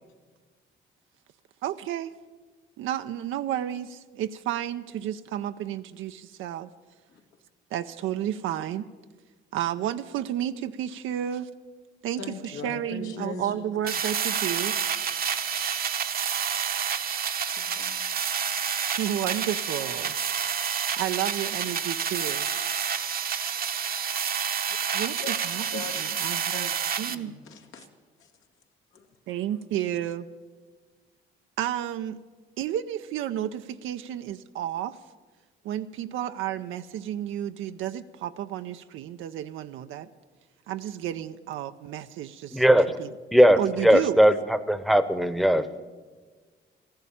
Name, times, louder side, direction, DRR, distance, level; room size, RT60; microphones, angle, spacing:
voice 1, 1.6-2.1 2.8-6.7 7.7-8.9 9.5-11.5 12.0-14.8 18.9-20.2 21.0-22.5 24.9-25.8 26.2-26.7 27.0-27.3 29.3-30.3 31.6-32.2 32.6-35.0 35.6-40.1 40.7-42.6 43.0-43.1 43.6-44.2, right 11 dB, 85° right, 9 dB, 0.6 m, -31 dB
voice 2, 12.2-13.7 15.2-15.3 16.3-16.5 17.6-18.3 24.7-24.8 25.2-25.4 25.7-26.1 26.5-26.7 27.1-27.9 28.2-28.3 28.9-29.4, left 5 dB, 80° left, 4 dB, 1.8 m, -41 dB
sound 1, 13.9-27.2, right 7 dB, 50° right, 0.8 m, -29 dB
voice 3, 42.5-43.0 43.3-45.7, equal, ahead, 13 dB, 0.9 m, -19 dB
14.0 x 11.5 x 8.6 m, 1.4 s
cardioid pair, 90°, 20 cm